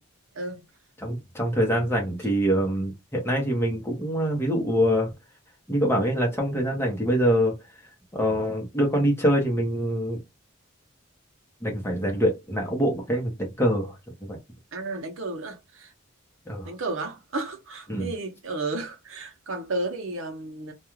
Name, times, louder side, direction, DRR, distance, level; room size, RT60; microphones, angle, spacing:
voice 1, 1.0-5.1 5.7-7.5 8.1-10.2 11.6-13.9 14.3-14.4 16.5-16.7 17.9-18.1, equal, 10° left, 0.8 m, -24 dB
voice 2, 14.7-15.9 16.6-20.7, right 2 dB, 70° right, 0.7 m, -33 dB
2.4 x 2.3 x 3.0 m
head